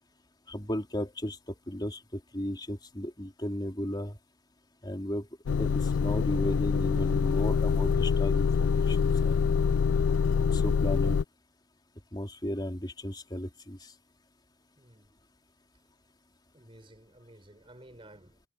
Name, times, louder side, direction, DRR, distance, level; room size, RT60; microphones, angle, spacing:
voice 1, 0.5-4.2 4.8-5.3 5.6-9.5 10.5-11.2 12.1-13.9, equal, 25° left, 3.6 m, -35 dB
Motor vehicle (road) / Engine starting / Idling, 5.5-11.2, left 6 dB, 85° left, 0.4 m, -25 dB
voice 2, 14.8-15.1 16.5-18.4, right 1 dB, 30° right, 4.7 m, -53 dB
head